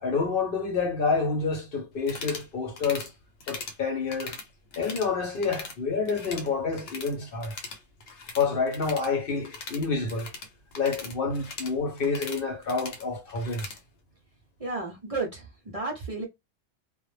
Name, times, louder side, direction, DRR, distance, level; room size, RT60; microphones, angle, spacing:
voice 1, 0.0-3.1 3.5-4.4 4.8-7.5 8.4-10.3 10.8-13.7, left 4 dB, 55° left, 0.8 m, -28 dB
sound 1, 2.0-2.5 2.8-3.1 3.4-3.8 4.1-5.1 5.4-5.8 6.1-7.2 7.4-13.8, left 4 dB, 90° left, 0.9 m, -40 dB
voice 2, 14.6-16.3, right 3 dB, 40° right, 0.5 m, -33 dB
2.2 x 2.0 x 3.1 m
omnidirectional pair, 1.1 m